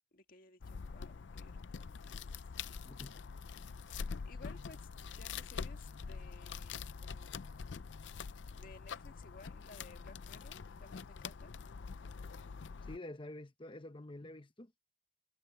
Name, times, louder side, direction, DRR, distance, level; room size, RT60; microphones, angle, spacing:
voice 1, 0.1-2.4 4.3-4.9 5.2-7.7 8.5-11.5, left 3 dB, 50° left, 1.8 m, -58 dB
sound 1, 0.6-13.0, left 5 dB, 75° left, 0.5 m, -45 dB
voice 2, 2.8-3.2 12.9-14.7, left 1 dB, 30° left, 1.0 m, -48 dB
head